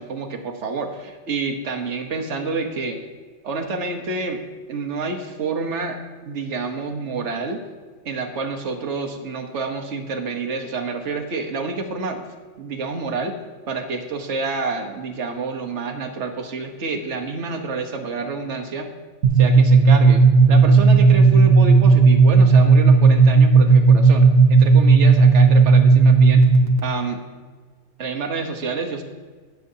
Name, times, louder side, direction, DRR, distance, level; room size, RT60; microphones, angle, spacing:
voice 1, 0.0-3.0 3.4-6.0 6.3-7.7 8.0-12.2 12.6-13.4 13.7-18.9 19.4-26.5 26.8-27.2 28.0-29.0, right 4 dB, 65° right, 3 dB, 1.3 m, -28 dB
sound 1, 19.2-26.8, right 4 dB, 90° right, 1.5 m, -13 dB
19.0 x 7.1 x 2.8 m, 1.5 s
omnidirectional pair, 1.3 m